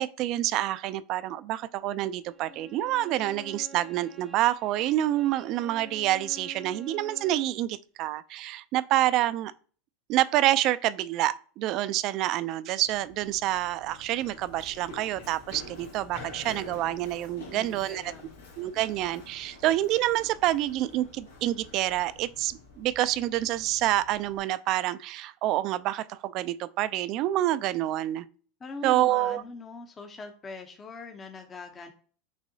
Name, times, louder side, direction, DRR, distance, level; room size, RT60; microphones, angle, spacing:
voice 1, 0.0-9.5 10.1-18.1 18.6-28.3 28.8-29.4, right 14 dB, 55° right, 0.3 m, -27 dB
Bowed string instrument, 2.2-7.6, equal, 15° right, 0.7 m, -48 dB
Run, 12.8-24.4, left 3 dB, 90° left, 1.6 m, -48 dB
voice 2, 17.5-18.3 28.6-31.9, left 3 dB, 25° left, 0.7 m, -42 dB
6.2 x 2.7 x 2.7 m
hypercardioid pair, 100°, 0 cm